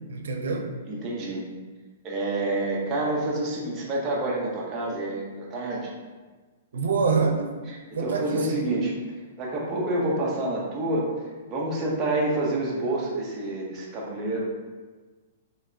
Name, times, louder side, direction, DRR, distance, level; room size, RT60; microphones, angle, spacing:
voice 1, 0.1-0.7 6.7-7.5 7.9-8.7, right 4 dB, 80° right, 3 dB, 0.6 m, -26 dB
voice 2, 0.9-1.4 2.0-5.8 7.7-8.9 9.4-11.0 11.5-14.5, right 2 dB, 15° right, -4 dB, 0.7 m, -28 dB
4.7 x 3.2 x 2.6 m, 1.3 s
hypercardioid pair, 175°, 0 cm